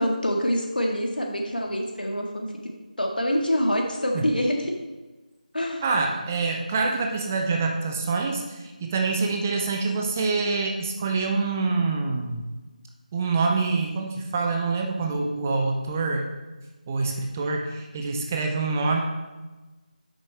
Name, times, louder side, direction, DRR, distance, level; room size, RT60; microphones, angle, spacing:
voice 1, 0.0-2.5 3.0-4.7 5.5-5.9, equal, 80° left, 1 dB, 1.7 m, -25 dB
voice 2, 5.8-12.4 13.1-16.3 16.9-19.0, right 4 dB, 15° right, 1 dB, 0.5 m, -26 dB
8.4 x 6.3 x 3.2 m, 1.2 s
figure-of-eight pair, 165°, 5 cm